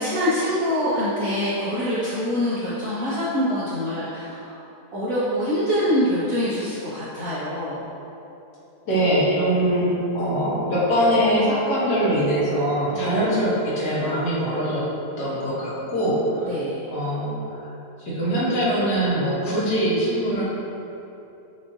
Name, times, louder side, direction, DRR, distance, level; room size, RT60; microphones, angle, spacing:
voice 1, 0.0-4.6 4.9-7.8 12.9-13.4 16.5-16.8, equal, 60° right, -11 dB, 1.1 m, -25 dB
voice 2, 8.8-14.9 15.2-16.5 16.9-17.6 18.0-20.4, equal, 70° left, -8 dB, 1.7 m, -22 dB
7.0 x 2.6 x 2.6 m, 2.9 s
omnidirectional pair, 1.8 m